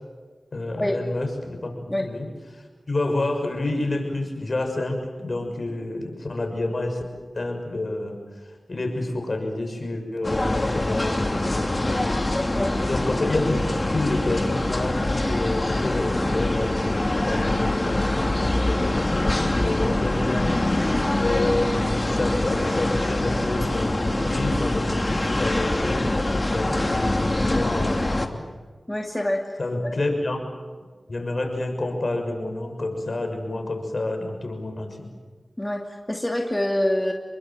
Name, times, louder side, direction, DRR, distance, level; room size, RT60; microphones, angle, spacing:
voice 1, 0.5-2.3 2.5-7.0 7.3-8.2 8.7-12.2 12.5-20.9 21.2-26.1 26.3-28.4 29.6-30.4 31.1-35.1, left 2 dB, 55° left, 4 dB, 6.3 m, -29 dB
sound 1, 10.2-28.3, left 1 dB, 35° left, 2.7 m, -24 dB
voice 2, 28.9-29.6 29.8-30.0 35.6-37.1, left 1 dB, 15° left, 2 dB, 2.6 m, -26 dB
27.5 x 22.5 x 7.6 m, 1.5 s
cardioid pair, 45°, 0 cm